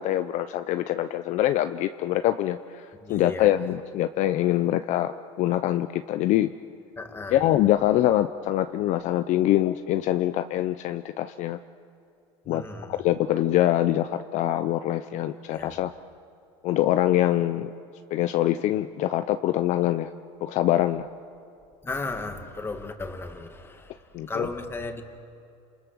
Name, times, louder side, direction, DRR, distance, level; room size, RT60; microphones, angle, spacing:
voice 1, 0.0-6.5 7.3-11.6 12.5-12.6 13.0-15.9 16.6-17.7 18.1-20.1 20.4-21.1 24.1-24.5, left 13 dB, 50° left, 10 dB, 0.7 m, -24 dB
voice 2, 3.0-3.7 7.0-7.4 12.5-13.0 15.5-15.8 21.8-24.0 24.3-25.0, left 3 dB, 15° left, 5 dB, 2.2 m, -35 dB
29.0 x 27.5 x 6.3 m, 2.6 s
supercardioid pair, 125°, 15 cm